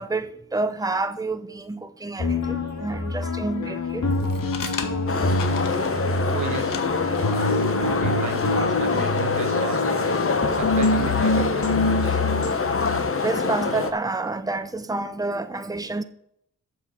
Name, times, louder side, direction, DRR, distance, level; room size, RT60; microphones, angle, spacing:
voice 1, 0.0-4.1 7.1-7.6 13.2-16.0, right 3 dB, 10° right, 0.8 m, -29 dB
sound 1, 2.2-13.0, left 2 dB, 60° left, 1.6 m, -26 dB
sound 2, 4.1-11.5, left 7 dB, 80° left, 0.9 m, -40 dB
sound 3, 5.1-13.9, left 4 dB, 45° left, 1.1 m, -25 dB
voice 2, 6.3-6.8 7.8-10.1 10.4-12.2, right 7 dB, 65° right, 0.9 m, -34 dB
7.2 x 6.3 x 7.8 m
cardioid pair, 50°, 32 cm